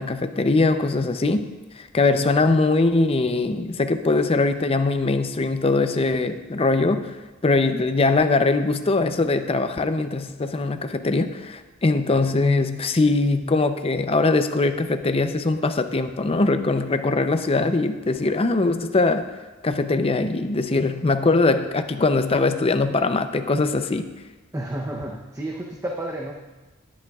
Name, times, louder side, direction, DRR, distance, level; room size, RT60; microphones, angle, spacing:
voice 1, 0.0-1.5 1.8-7.1 7.4-19.3 19.6-24.1, left 3 dB, 30° left, 8 dB, 0.5 m, -21 dB
voice 2, 24.5-26.3, right 1 dB, 15° right, 0 dB, 0.7 m, -31 dB
19.0 x 8.5 x 2.4 m, 1.2 s
head